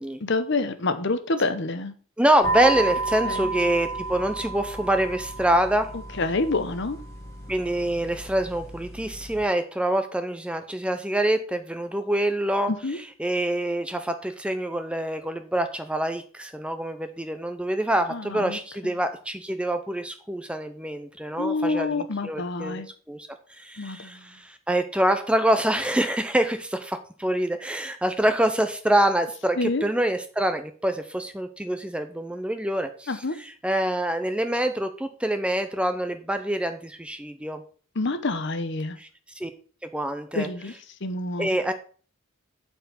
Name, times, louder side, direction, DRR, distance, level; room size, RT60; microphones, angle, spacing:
voice 1, 0.2-1.9 3.3-3.5 5.9-7.0 12.7-13.0 18.1-18.9 21.4-22.9 23.8-24.4 29.6-29.8 33.1-33.3 37.9-39.0 40.3-41.6, left 3 dB, 55° left, 10 dB, 0.8 m, -28 dB
voice 2, 2.2-5.9 7.5-12.7 13.2-22.8 23.1-23.3 23.6-33.1 33.4-37.6 39.4-39.5 39.9-40.5 41.4-41.7, right 1 dB, 5° right, 8 dB, 0.6 m, -25 dB
sound 1, 2.4-9.4, right 3 dB, 15° left, 2.1 m, -32 dB
9.0 x 4.5 x 5.9 m, 0.41 s
head